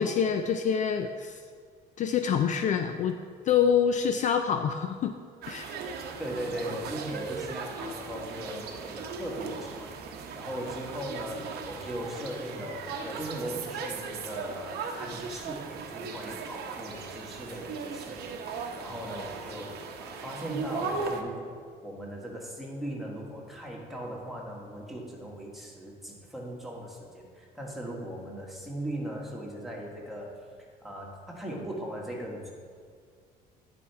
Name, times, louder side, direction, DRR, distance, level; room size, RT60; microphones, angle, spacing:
voice 1, 0.0-1.4 2.0-3.2 3.5-5.2 5.5-5.7, left 7 dB, 45° left, 7 dB, 0.4 m, -26 dB
sound 1, 5.4-21.2, right 5 dB, 75° right, 0.8 m, -38 dB
voice 2, 6.2-30.4 30.8-32.5, equal, ahead, -3 dB, 1.5 m, -39 dB
9.8 x 4.3 x 4.6 m, 2.1 s
cardioid pair, 110°, 17 cm